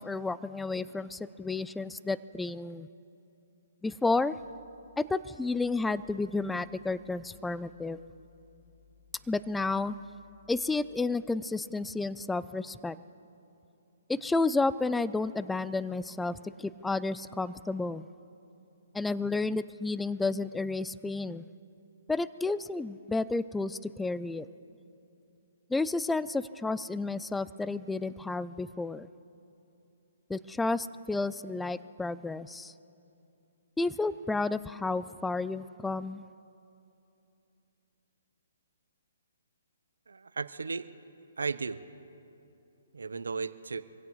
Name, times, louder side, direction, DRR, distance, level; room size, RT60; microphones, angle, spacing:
voice 1, 0.0-2.9 3.8-4.3 5.0-8.0 9.3-10.0 10.5-13.0 14.1-18.1 18.9-21.4 22.1-24.5 25.7-29.1 30.3-32.7 33.8-36.2, left 3 dB, 5° left, 16 dB, 0.4 m, -31 dB
sound 1, 4.4-11.1, left 7 dB, 80° left, 1.5 m, -62 dB
voice 2, 40.1-40.9 41.4-41.8 42.9-43.8, right 4 dB, 85° right, 14 dB, 0.7 m, -35 dB
25.5 x 16.5 x 3.1 m, 2.8 s
hypercardioid pair, 140°, 0 cm